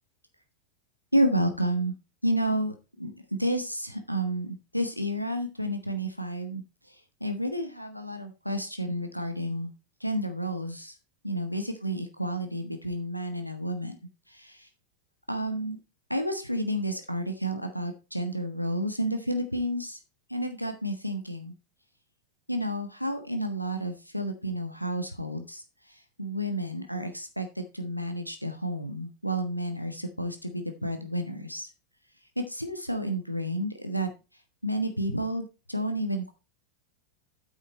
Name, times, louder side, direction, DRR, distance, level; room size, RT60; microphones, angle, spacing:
voice 1, 1.1-1.9 2.2-3.1 3.4-6.6 6.9-9.7 10.0-10.9 11.2-14.0 14.3-14.7 15.3-15.8 16.1-20.0 20.3-21.5 22.5-31.7 32.4-34.1 34.6-36.3, equal, 90° left, 7 dB, 1.2 m, -31 dB
9.0 x 7.1 x 4.2 m, 0.30 s
figure-of-eight pair, 90°, 0 cm